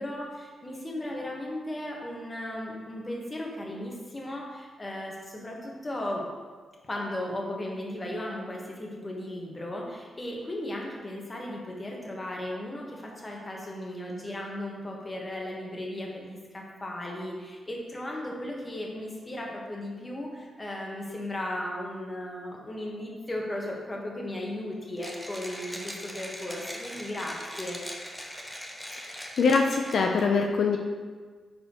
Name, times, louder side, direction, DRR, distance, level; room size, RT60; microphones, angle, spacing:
voice 1, 0.0-6.2 6.8-27.8, left 1 dB, 20° left, -2 dB, 1.2 m, -36 dB
Mechanisms, 25.0-30.2, equal, 5° left, 0.7 m, -40 dB
voice 2, 29.0-30.8, left 4 dB, 65° left, 2 dB, 0.5 m, -24 dB
9.5 x 4.2 x 2.9 m, 1.5 s
wide cardioid pair, 125°, 0 cm